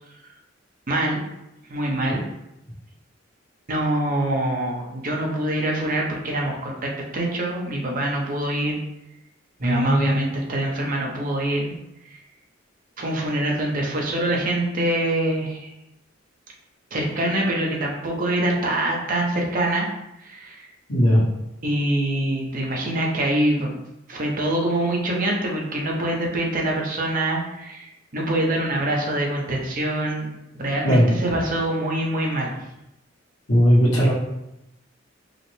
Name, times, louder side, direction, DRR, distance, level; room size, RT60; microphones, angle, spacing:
voice 1, 0.9-1.2 1.7-2.2 3.7-8.8 9.6-11.7 13.0-15.7 16.9-19.9 20.2-20.7 21.6-23.7 24.1-30.3 30.5-32.5, right 1 dB, 45° right, -1 dB, 0.8 m, -24 dB
voice 2, 9.6-10.1 20.9-21.2 30.8-31.1 33.5-34.1, equal, 80° left, -5 dB, 1.3 m, -17 dB
4.8 x 2.1 x 3.2 m, 0.88 s
head